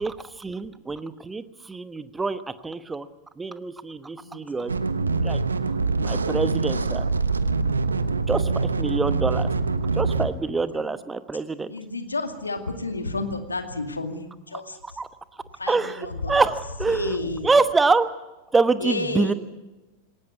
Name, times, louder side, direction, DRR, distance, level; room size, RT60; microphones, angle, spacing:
voice 1, 0.0-3.1 3.4-4.7 5.2-5.4 6.0-7.1 8.3-9.5 10.0-11.7 14.8-15.1 15.7-18.1 18.5-19.3, right 3 dB, 10° right, 13 dB, 1.1 m, -25 dB
voice 2, 4.2-5.1 6.1-6.4 10.4-10.9 11.7-14.8 15.6-16.4 16.9-17.5 18.8-19.3, left 2 dB, 80° left, 6 dB, 2.2 m, -31 dB
sound 1, 4.7-10.3, right 4 dB, 75° right, 1.1 m, -24 dB
20.0 x 18.5 x 9.4 m, 1.1 s
figure-of-eight pair, 90°, 0 cm